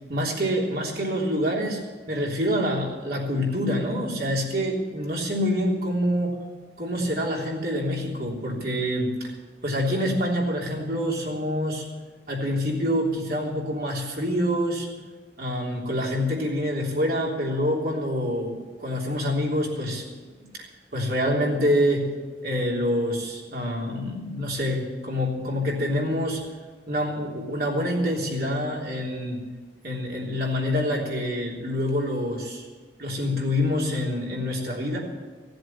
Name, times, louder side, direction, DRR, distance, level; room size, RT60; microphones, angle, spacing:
voice 1, 0.1-1.8 2.1-6.4 6.8-9.3 9.6-11.9 12.3-14.9 15.4-20.0 20.9-22.1 22.4-26.4 26.9-29.4 29.8-32.6 33.0-35.0, equal, 60° right, -2 dB, 3.4 m, -26 dB
16.5 x 7.8 x 9.2 m, 1.4 s
head